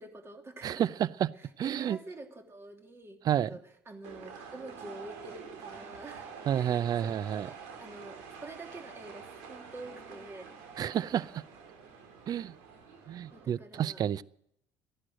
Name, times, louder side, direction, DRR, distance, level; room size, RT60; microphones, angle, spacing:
voice 1, 0.0-0.8 1.3-3.2 3.5-10.5 13.3-14.1, right 2 dB, 30° right, 4 dB, 3.1 m, -47 dB
voice 2, 0.6-1.3 1.6-2.0 3.2-3.5 6.5-7.5 10.8-11.4 12.3-12.5 13.1-14.2, right 10 dB, 50° right, 21 dB, 0.5 m, -30 dB
sound 1, 4.0-13.4, right 6 dB, 80° right, 3.4 m, -47 dB
15.0 x 11.0 x 7.7 m, 0.72 s
supercardioid pair, 75°, 9 cm